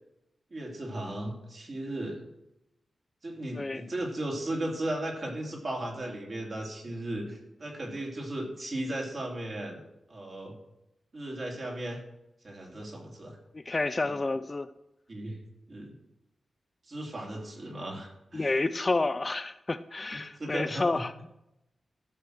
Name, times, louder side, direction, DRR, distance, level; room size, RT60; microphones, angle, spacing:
voice 1, 0.5-2.3 3.2-9.8 10.1-10.5 11.1-12.0 12.4-13.4 14.1-14.3 15.1-15.4 15.7-15.9 16.8-18.5 20.1-21.2, right 1 dB, 40° right, 0 dB, 2.8 m, -36 dB
voice 2, 13.5-14.7 18.3-21.1, left 3 dB, 25° left, 12 dB, 0.3 m, -30 dB
13.5 x 6.3 x 6.4 m, 0.88 s
wide cardioid pair, 130°, 0 cm